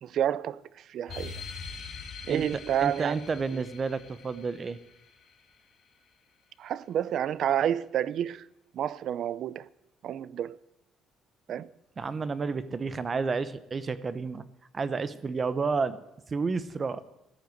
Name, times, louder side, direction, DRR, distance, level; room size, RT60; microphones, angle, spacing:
voice 1, 0.0-1.4 2.3-3.1 3.5-3.6 6.6-8.5 8.7-9.7 10.0-10.6 11.5-11.7, right 10 dB, 55° right, 0.6 m, -29 dB
sound 1, 1.1-6.1, left 5 dB, 45° left, 2.9 m, -44 dB
voice 2, 2.3-4.8 12.0-14.4 14.7-16.0 16.3-17.0, right 4 dB, 25° right, 0.9 m, -31 dB
14.5 x 10.0 x 9.4 m
cardioid pair, 150°, 0 cm